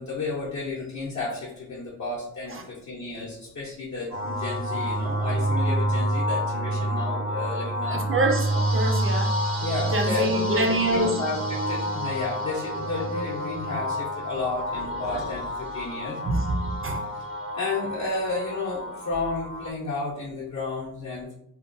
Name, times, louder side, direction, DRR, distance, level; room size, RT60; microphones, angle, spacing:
voice 1, 0.0-8.0 9.6-16.2 17.5-21.3, left 3 dB, 55° left, -5 dB, 0.6 m, -32 dB
sound 1, 4.1-19.7, right 1 dB, 90° right, 1.1 m, -28 dB
voice 2, 7.9-9.3 9.9-11.2 16.2-17.1, right 2 dB, 40° right, 4 dB, 0.4 m, -26 dB
2.7 x 2.1 x 2.5 m, 0.75 s
wide cardioid pair, 110°, 34 cm